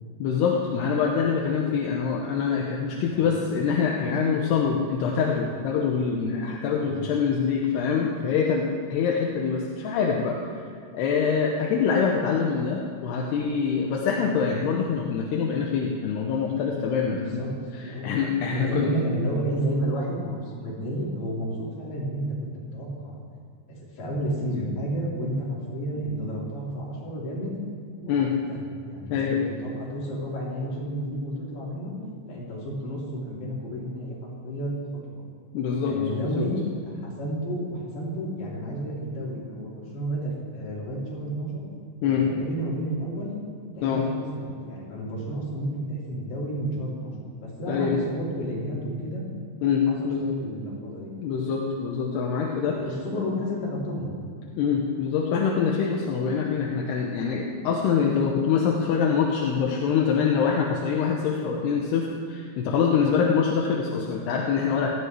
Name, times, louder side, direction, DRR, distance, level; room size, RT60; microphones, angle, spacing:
voice 1, 0.2-10.4 10.9-17.4 17.7-18.9 28.1-28.3 29.1-29.4 35.5-36.5 42.0-42.3 43.8-44.0 47.7-47.9 49.6-50.3 51.2-52.8 53.1-53.2 54.6-64.9, left 6 dB, 80° left, 0 dB, 2.9 m, -25 dB
voice 2, 17.1-17.5 17.9-18.1 18.5-23.2 23.7-27.5 28.0-28.1 28.5-32.0 32.2-34.2 34.4-34.8 35.1-35.2 35.9-36.6 37.0-41.6 42.1-43.3 43.8-47.1 47.4-49.3 49.9-51.1 52.7-54.2, right 1 dB, 55° left, -5 dB, 4.5 m, -31 dB
17.5 x 14.0 x 3.2 m, 2.2 s
omnidirectional pair, 5.0 m